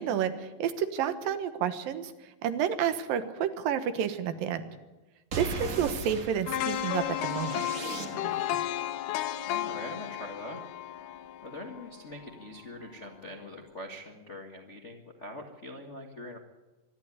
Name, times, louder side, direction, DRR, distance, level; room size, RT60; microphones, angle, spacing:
voice 1, 0.0-2.1 2.4-4.7 5.4-7.6, right 9 dB, 80° right, 10 dB, 3.0 m, -30 dB
sound 1, 5.3-8.6, right 3 dB, 35° right, 1.3 m, -38 dB
sound 2, 6.5-12.5 12.9-13.0, left 12 dB, 75° left, 2.3 m, -34 dB
voice 2, 9.5-10.6 11.4-16.4, left 1 dB, 45° left, 2 dB, 0.9 m, -43 dB
25.0 x 11.5 x 9.7 m, 1.1 s
omnidirectional pair, 4.0 m